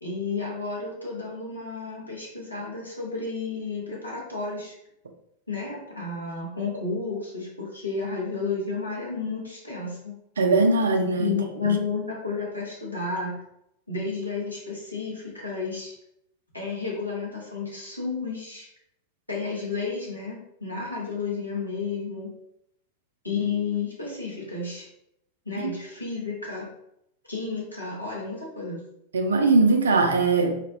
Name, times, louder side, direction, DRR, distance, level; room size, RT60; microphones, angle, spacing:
voice 1, 0.0-4.7 5.5-10.1 11.2-13.4 13.9-15.9 16.5-18.7 19.3-22.3 23.2-24.9 25.5-26.7 27.3-28.8, left 4 dB, 85° left, -4 dB, 0.8 m, -31 dB
voice 2, 10.4-11.4 11.6-11.7 29.1-30.6, right 3 dB, 70° right, 5 dB, 0.3 m, -20 dB
2.5 x 2.1 x 2.5 m, 0.79 s
figure-of-eight pair, 90°, 0 cm